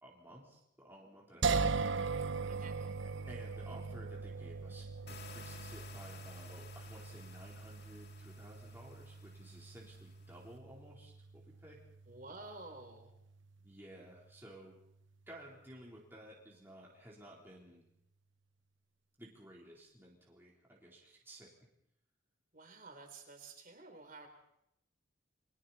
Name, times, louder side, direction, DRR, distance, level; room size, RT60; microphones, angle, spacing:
voice 1, 0.0-2.3 3.0-11.8 13.6-14.8 15.3-17.8 19.2-21.5, right 1 dB, 10° right, -4 dB, 3.8 m, -55 dB
sound 1, 1.4-14.5, right 4 dB, 65° right, 0.8 m, -40 dB
voice 2, 2.5-2.8 12.1-13.1 22.5-24.3, right 3 dB, 40° right, 5 dB, 3.8 m, -51 dB
sound 2, 5.1-10.6, left 5 dB, 50° left, 2.2 m, -56 dB
29.5 x 23.0 x 4.3 m, 0.78 s
head